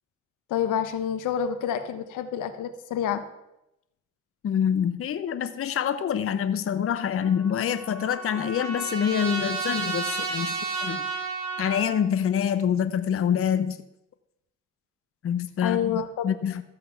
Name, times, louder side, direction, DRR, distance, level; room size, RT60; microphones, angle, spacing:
voice 1, 0.5-3.2 15.6-16.3, left 8 dB, 85° left, 10 dB, 1.0 m, -28 dB
voice 2, 4.4-10.5 10.8-11.0 11.6-13.8 15.2-16.6, left 8 dB, 45° left, 12 dB, 0.7 m, -26 dB
Trumpet, 7.2-12.0, right 4 dB, 65° right, 5.1 m, -32 dB
13.5 x 7.5 x 5.7 m, 0.87 s
cardioid pair, 90°, 30 cm